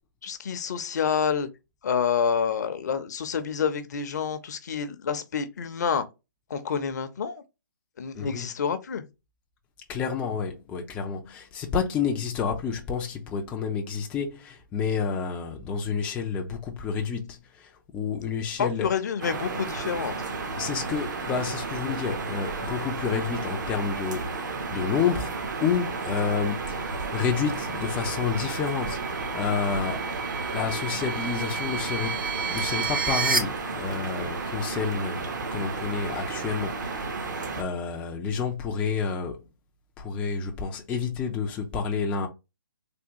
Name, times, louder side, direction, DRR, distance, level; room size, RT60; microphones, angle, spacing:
voice 1, 0.2-1.5 1.8-6.1 6.5-7.4 8.0-9.0 18.6-20.1, left 7 dB, 55° left, 0.6 m, -28 dB
voice 2, 8.1-8.5 9.9-18.9 20.5-24.3 24.7-25.3 25.6-30.1 30.5-32.2 32.5-39.4 40.0-42.3, left 6 dB, 10° left, 0.3 m, -29 dB
sound 1, 19.2-37.6, right 4 dB, 60° right, 0.9 m, -33 dB
sound 2, 22.4-33.4, right 4 dB, 90° right, 1.8 m, -34 dB
3.4 x 2.3 x 2.8 m
hypercardioid pair, 145°, 11 cm